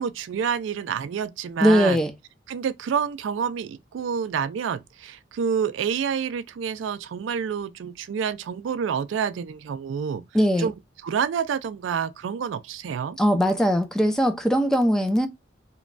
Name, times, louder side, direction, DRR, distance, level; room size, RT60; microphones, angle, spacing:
voice 1, 0.0-2.0 2.5-10.2 10.6-10.7 11.0-13.2, right 7 dB, 75° right, 0.3 m, -28 dB
voice 2, 1.6-2.1 10.3-10.7 13.2-15.3, equal, 5° left, 0.4 m, -20 dB
3.0 x 2.2 x 2.4 m
head